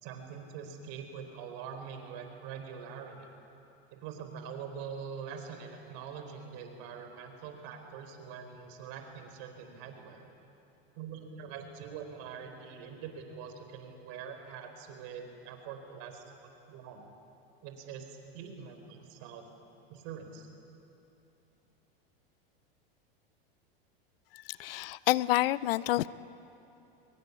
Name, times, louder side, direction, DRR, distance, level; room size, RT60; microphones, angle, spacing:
voice 1, 0.0-3.3 3.9-10.3 10.9-16.2 16.7-17.0 17.6-18.1 18.3-19.5 19.9-20.5, right 7 dB, 60° right, 6 dB, 4.4 m, -44 dB
voice 2, 24.3-26.1, left 17 dB, 75° left, 19 dB, 0.7 m, -28 dB
23.5 x 21.5 x 9.7 m, 2.9 s
supercardioid pair, 115°, 29 cm